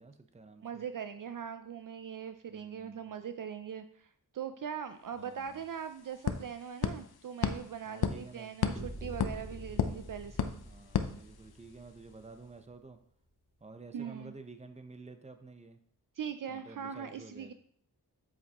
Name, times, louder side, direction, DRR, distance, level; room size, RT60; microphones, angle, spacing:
voice 1, 0.0-0.8 2.5-3.2 5.1-5.6 7.9-8.5 10.6-13.0 13.6-15.8 16.5-17.5, right 3 dB, 20° right, 8 dB, 0.8 m, -51 dB
voice 2, 0.6-10.5 13.9-14.3 16.2-17.5, right 8 dB, 60° right, 9 dB, 0.5 m, -41 dB
sound 1, 5.1-5.2 5.5-11.9, left 7 dB, 75° left, 0.7 m, -35 dB
sound 2, 8.8-12.8, equal, 5° left, 3.3 m, -47 dB
7.7 x 7.6 x 2.9 m, 0.62 s
wide cardioid pair, 85°, 37 cm